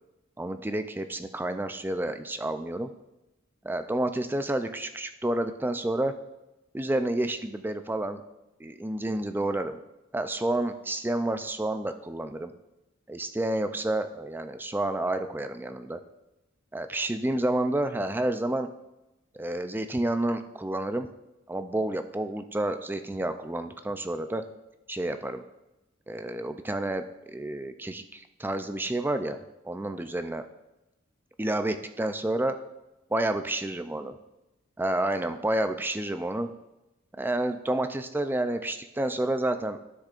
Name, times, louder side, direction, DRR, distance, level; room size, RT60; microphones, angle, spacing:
voice 1, 0.4-2.9 3.6-6.1 6.7-8.2 8.6-9.8 10.1-12.5 13.1-16.0 16.7-18.7 19.3-21.1 21.5-24.4 24.9-25.4 26.1-29.4 29.6-30.4 31.4-32.6 33.1-34.2 34.8-36.5 37.2-39.8, right 1 dB, 10° right, 8 dB, 0.4 m, -29 dB
12.0 x 6.6 x 2.5 m, 0.96 s
head